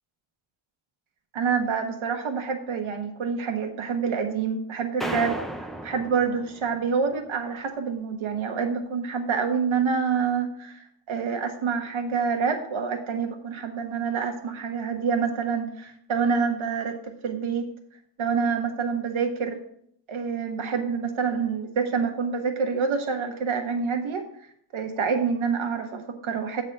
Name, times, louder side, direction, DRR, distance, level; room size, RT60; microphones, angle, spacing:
voice 1, 1.3-5.4 5.8-17.7 18.2-19.6 20.1-24.3 24.7-26.6, right 5 dB, 80° right, 5 dB, 1.1 m, -27 dB
sound 1, 5.0-7.0, right 1 dB, ahead, 0.6 m, -34 dB
8.7 x 4.0 x 6.4 m, 0.68 s
wide cardioid pair, 150°, 48 cm